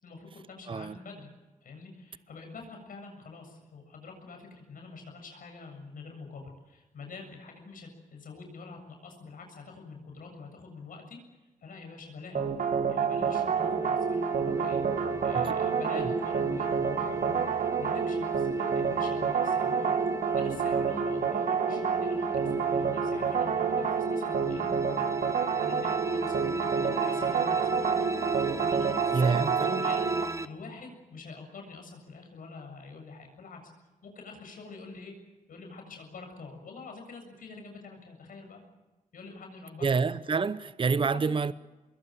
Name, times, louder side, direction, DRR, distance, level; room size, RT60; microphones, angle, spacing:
voice 1, 0.0-1.3 1.6-11.2 11.6-12.5 12.9-17.5 17.8-19.9 20.2-28.3 28.6-30.1 30.4-33.6 34.0-35.1 35.5-38.6 39.1-40.4 41.0-41.4, left 4 dB, 80° left, 7.2 m, -46 dB
voice 2, 0.7-1.0 15.3-15.5 15.9-16.1 29.1-29.9 39.8-41.5, right 4 dB, 40° right, 0.8 m, -28 dB
sound 1, 12.3-30.3, right 6 dB, 75° right, 2.1 m, -28 dB
sound 2, 13.1-30.5, right 3 dB, 20° right, 1.1 m, -40 dB
25.0 x 22.0 x 7.8 m
cardioid pair, 85°, 14 cm